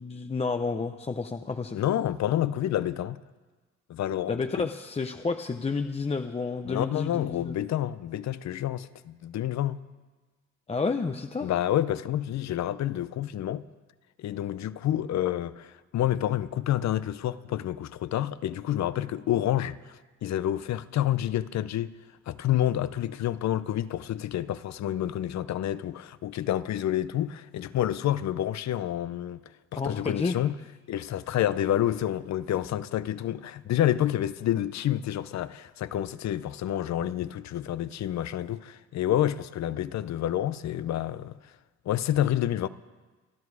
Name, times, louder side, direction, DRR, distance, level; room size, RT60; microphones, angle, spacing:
voice 1, 0.0-1.8 4.3-7.6 10.7-11.5 29.8-30.4, left 4 dB, 20° left, 0.7 m, -30 dB
voice 2, 1.7-3.2 3.9-4.7 6.6-9.8 11.4-13.6 14.2-19.8 20.2-21.9 22.3-29.4 29.7-30.5 30.9-41.3 41.9-42.7, left 12 dB, 65° left, 0.7 m, -28 dB
26.5 x 10.5 x 4.8 m
cardioid pair, 90°, 30 cm